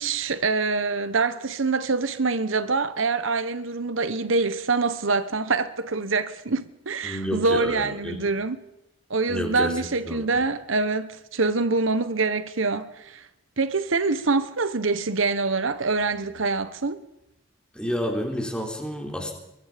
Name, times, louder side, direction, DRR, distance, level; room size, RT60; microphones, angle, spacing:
voice 1, 0.0-8.6 9.1-13.3 13.6-17.0, right 3 dB, 75° right, 1.1 m, -25 dB
voice 2, 7.0-8.2 9.3-9.7 10.1-10.2 17.7-19.3, equal, 5° left, 3.9 m, -29 dB
23.5 x 23.5 x 5.2 m
head